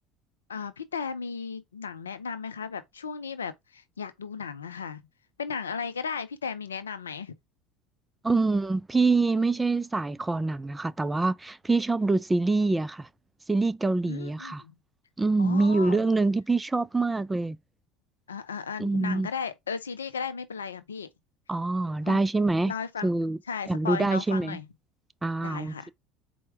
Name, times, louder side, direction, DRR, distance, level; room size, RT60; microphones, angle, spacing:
voice 1, 0.5-5.0 5.4-7.3 14.1-14.7 15.4-16.1 18.3-21.1 22.0-22.2 22.7-23.1 23.5-24.7 25.4-25.9, left 6 dB, 85° left, 0.4 m, -35 dB
voice 2, 8.2-13.1 13.5-14.6 15.2-17.6 18.8-19.3 21.5-22.7 23.0-23.4 23.7-24.6 25.2-25.9, right 3 dB, 15° right, 0.3 m, -25 dB
4.3 x 2.1 x 4.6 m
hypercardioid pair, 70°, 0 cm